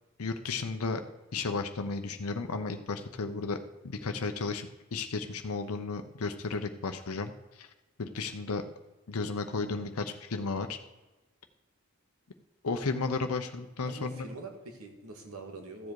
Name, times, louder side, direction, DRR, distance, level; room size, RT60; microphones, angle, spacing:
voice 1, 0.2-1.0 1.3-3.6 3.8-7.3 7.6-7.7 8.0-8.6 9.1-10.8 12.6-14.3, left 4 dB, 85° left, 6 dB, 0.8 m, -33 dB
voice 2, 13.8-15.9, right 2 dB, 85° right, 4 dB, 1.9 m, -44 dB
14.0 x 7.4 x 4.7 m, 1.1 s
head